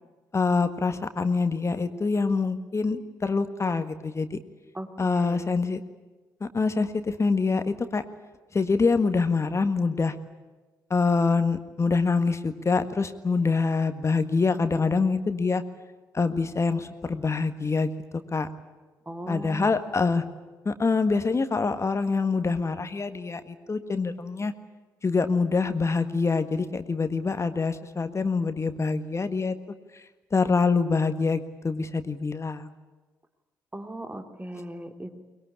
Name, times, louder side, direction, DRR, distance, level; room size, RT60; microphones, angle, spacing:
voice 1, 0.3-4.4 5.0-5.8 6.4-8.0 8.5-10.1 10.9-15.6 16.1-17.9 18.3-18.5 19.3-20.2 20.6-24.5 25.0-29.5 30.3-32.7, left 4 dB, 30° left, 10 dB, 1.7 m, -25 dB
voice 2, 4.7-5.5 19.1-19.8 33.7-35.2, right 1 dB, 15° right, 6 dB, 2.8 m, -38 dB
23.5 x 21.5 x 9.9 m, 1.2 s
figure-of-eight pair, 40°, 10 cm